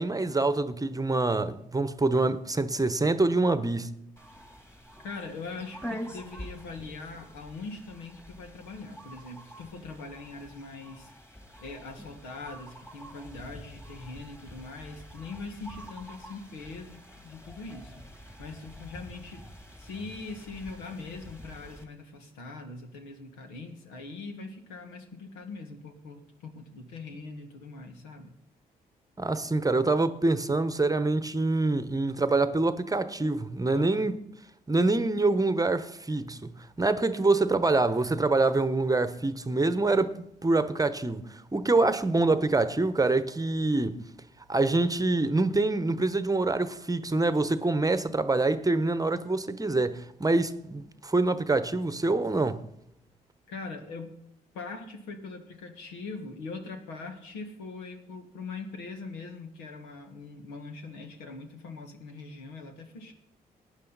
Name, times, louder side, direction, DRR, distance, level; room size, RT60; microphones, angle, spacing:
voice 1, 0.0-3.9 29.2-34.1 34.7-40.1 40.4-44.0 44.5-52.6, right 2 dB, 20° right, 1.0 m, -25 dB
sound 1, 4.2-21.8, equal, 15° left, 2.9 m, -46 dB
voice 2, 5.0-11.1 11.6-19.4 19.8-28.3 33.7-34.1 53.5-54.2 54.5-63.1, left 3 dB, 80° left, 1.6 m, -42 dB
18.0 x 9.8 x 4.1 m
hypercardioid pair, 45°, 19 cm